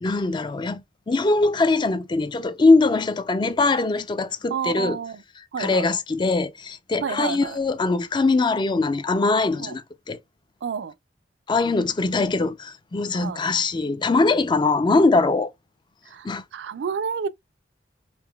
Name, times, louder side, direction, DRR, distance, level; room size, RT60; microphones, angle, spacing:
voice 1, 0.0-5.0 5.6-10.2 11.5-15.5 16.2-16.4, left 3 dB, 25° left, 0.4 m, -22 dB
voice 2, 4.5-5.2 5.5-5.9 7.0-7.6 9.6-9.8 10.6-10.9 13.1-13.4 16.1-17.3, right 6 dB, 70° right, 0.4 m, -30 dB
3.8 x 2.5 x 2.2 m
head